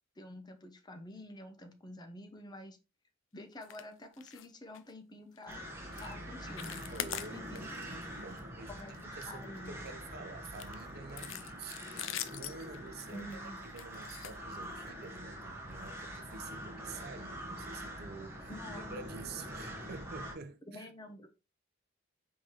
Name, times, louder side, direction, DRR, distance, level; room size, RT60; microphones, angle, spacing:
voice 1, 0.2-2.8 3.3-5.6 6.0-7.7 8.7-9.0 9.3-9.7 13.1-13.6 18.5-18.9 20.7-21.3, left 1 dB, 20° left, 0.7 m, -48 dB
sound 1, 3.6-3.9 4.1-4.5 4.7-4.9 5.4-5.5 5.9-6.1 6.4-7.8 8.2-8.4 8.8-9.9 10.4-15.0 15.8-15.9 16.3-16.4 16.8-16.9, left 11 dB, 70° left, 0.4 m, -44 dB
sound 2, 5.5-20.4, equal, 15° right, 1.0 m, -45 dB
voice 2, 6.9-20.9, right 4 dB, 55° right, 0.6 m, -49 dB
4.8 x 3.7 x 2.9 m
head